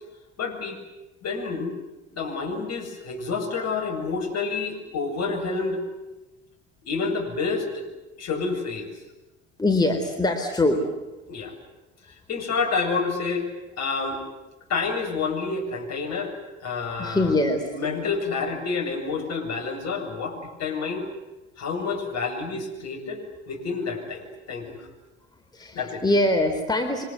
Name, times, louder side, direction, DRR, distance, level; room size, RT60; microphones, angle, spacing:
voice 1, 0.4-0.8 1.2-1.7 2.1-5.8 6.9-7.8 8.2-8.9 11.3-11.5 12.3-13.5 13.8-14.2 14.7-16.3 16.6-17.3 17.7-21.1 21.6-24.8 25.7-26.0, left 4 dB, 45° left, 2 dB, 7.9 m, -28 dB
voice 2, 9.6-10.9 17.0-17.7 25.5-27.0, left 2 dB, 10° left, 4 dB, 4.1 m, -23 dB
28.5 x 25.0 x 8.3 m, 1.0 s
figure-of-eight pair, 60°, 35 cm